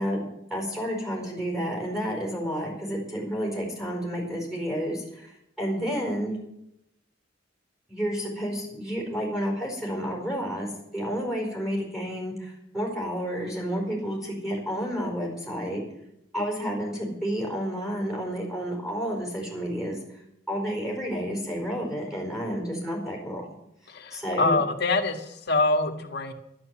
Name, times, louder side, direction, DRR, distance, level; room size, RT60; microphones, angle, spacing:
voice 1, 0.0-6.4 7.9-15.8 16.3-20.0 20.5-23.4 24.1-24.6, equal, ahead, 0 dB, 4.6 m, -30 dB
voice 2, 23.9-26.3, left 3 dB, 60° left, 3 dB, 1.8 m, -25 dB
12.0 x 11.5 x 7.7 m, 0.82 s
head